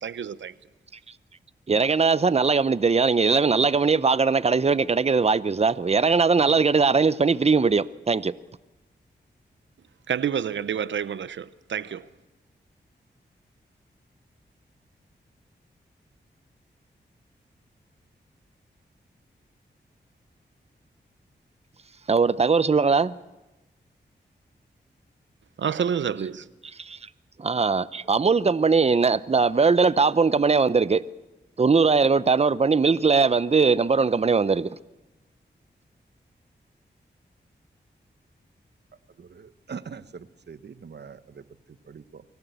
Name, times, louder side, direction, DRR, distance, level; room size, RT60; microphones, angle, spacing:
voice 1, 0.0-0.5 10.1-12.1 25.6-26.5, right 8 dB, 80° right, 0.8 m, -28 dB
voice 2, 1.7-8.3 22.1-23.2 26.8-27.0 27.4-31.0 31.6-34.8, right 4 dB, 35° right, 0.7 m, -20 dB
voice 3, 39.2-42.2, right 6 dB, 65° right, 1.1 m, -43 dB
24.0 x 17.0 x 8.1 m
cardioid pair, 55°, 19 cm